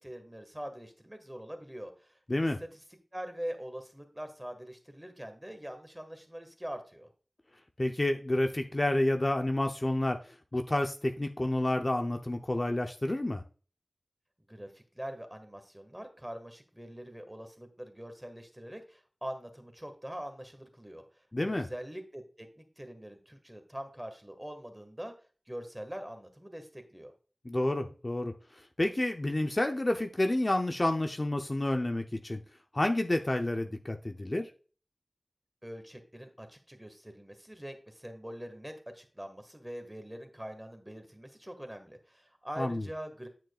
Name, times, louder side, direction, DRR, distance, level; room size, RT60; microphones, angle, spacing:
voice 1, 0.0-2.7 3.1-7.1 14.5-25.1 25.5-27.1 35.6-43.3, equal, 15° right, 6 dB, 1.7 m, -43 dB
voice 2, 2.3-2.6 7.8-13.4 21.3-21.7 27.4-28.3 28.8-32.4 32.7-34.5 42.6-42.9, left 1 dB, 40° left, 4 dB, 0.7 m, -29 dB
9.2 x 7.3 x 2.4 m, 0.38 s
wide cardioid pair, 55°, 0 cm